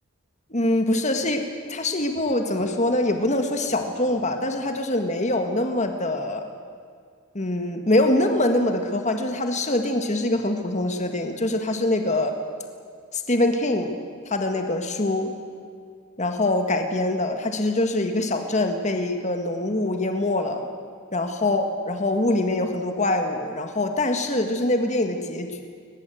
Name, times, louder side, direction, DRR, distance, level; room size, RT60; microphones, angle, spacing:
voice 1, 0.5-6.5 7.4-12.4 13.1-15.3 16.2-20.6 21.1-25.6, left 1 dB, 35° left, 5 dB, 1.7 m, -24 dB
22.0 x 21.0 x 7.9 m, 2.2 s
head